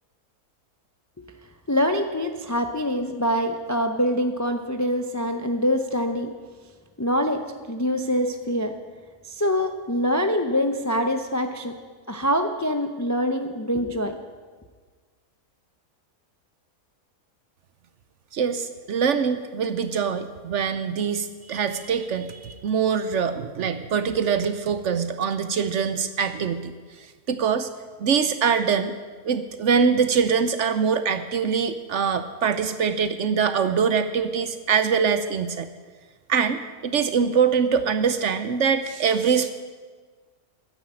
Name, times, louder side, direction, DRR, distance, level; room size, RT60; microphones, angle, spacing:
voice 1, 1.7-6.3 7.0-7.4 7.7-8.7 9.2-11.7 12.1-14.2, equal, 25° left, 6 dB, 0.3 m, -24 dB
voice 2, 18.3-26.7 27.3-27.7 28.0-28.9 29.2-35.7 36.3-39.5, right 6 dB, 60° right, 10 dB, 0.9 m, -23 dB
13.0 x 9.7 x 7.6 m, 1.5 s
omnidirectional pair, 1.6 m